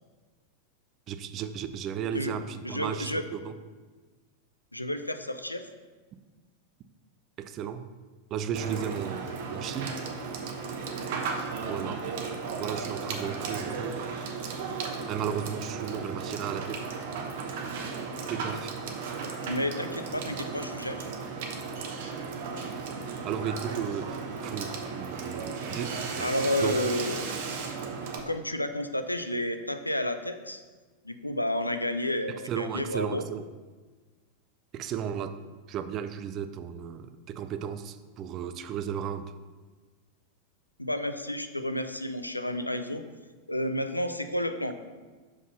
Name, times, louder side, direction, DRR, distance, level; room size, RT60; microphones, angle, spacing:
voice 1, 1.1-3.5 7.4-7.9 8.3-10.0 11.6-12.0 12.6-14.0 15.1-16.9 18.3-18.7 23.2-26.3 26.6-26.7 32.5-33.5 34.7-35.4 35.7-39.3, right 8 dB, 35° right, 10 dB, 0.5 m, -34 dB
voice 2, 2.6-3.2 4.7-5.7 19.4-21.1 26.2-27.4 28.3-30.6 31.0-33.3 40.8-43.0 43.5-44.8, left 1 dB, 85° left, 9 dB, 0.5 m, -31 dB
Water / Water tap faucet / Sink (filling or washing), 8.5-28.2, right 5 dB, 50° right, 1.0 m, -35 dB
6.2 x 5.5 x 5.6 m, 1.3 s
figure-of-eight pair, 90°, 0 cm